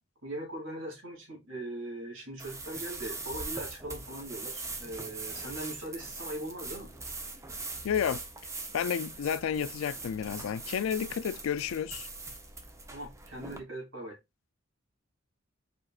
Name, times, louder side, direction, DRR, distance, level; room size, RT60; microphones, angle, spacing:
voice 1, 0.2-6.9 12.9-14.2, right 1 dB, 70° right, 2.4 m, -40 dB
sound 1, 2.4-13.6, right 3 dB, 15° right, 0.7 m, -41 dB
voice 2, 7.8-8.2 8.7-12.1, left 8 dB, 85° left, 0.4 m, -31 dB
4.8 x 4.5 x 2.4 m
head